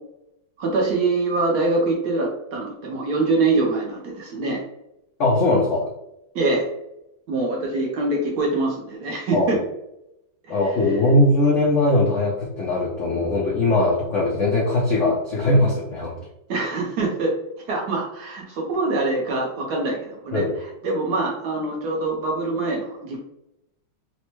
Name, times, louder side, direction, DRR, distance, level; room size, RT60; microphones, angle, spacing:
voice 1, 0.6-4.6 6.3-6.7 7.3-9.6 16.5-17.3 17.7-20.4 20.8-23.2, right 3 dB, 65° right, -1 dB, 1.2 m, -24 dB
voice 2, 5.2-5.9 9.3-9.5 10.5-16.1 20.3-20.5, left 2 dB, 75° left, -3 dB, 0.7 m, -20 dB
4.2 x 2.2 x 3.0 m, 0.84 s
omnidirectional pair, 2.1 m